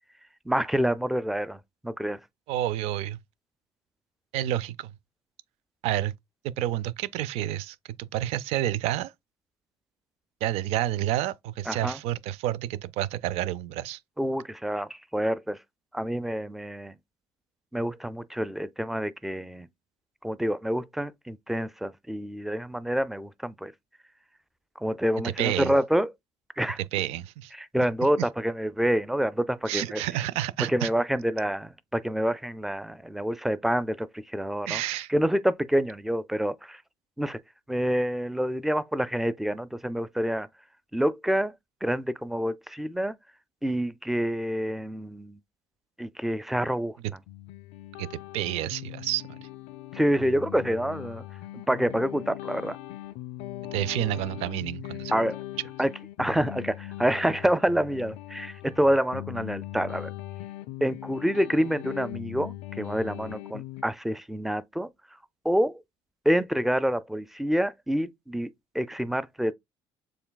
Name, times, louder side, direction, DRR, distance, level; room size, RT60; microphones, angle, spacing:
voice 1, 0.5-2.2 11.7-12.0 14.2-15.6 15.9-17.0 17.7-19.7 20.2-23.7 24.8-26.1 26.6-26.8 27.5-30.0 30.7-34.8 35.1-36.8 37.2-37.4 37.7-40.5 40.9-41.6 41.8-43.2 43.6-45.4 46.0-47.0 49.9-51.2 51.5-52.8 55.1-55.4 55.8-55.9 56.2-60.1 60.8-64.9 65.4-65.8 66.3-69.5, equal, 5° right, 0.4 m, -27 dB
voice 2, 2.5-3.2 4.3-4.9 5.8-6.1 6.4-9.1 10.4-14.0 25.4-25.7 26.9-27.5 28.2-28.3 29.7-30.9 34.7-35.1 48.0-49.5 53.7-55.1, right 13 dB, 80° right, 0.4 m, -29 dB
sound 1, 47.3-63.8, left 15 dB, 85° left, 0.5 m, -40 dB
7.0 x 3.1 x 2.2 m
cardioid pair, 110°, 10 cm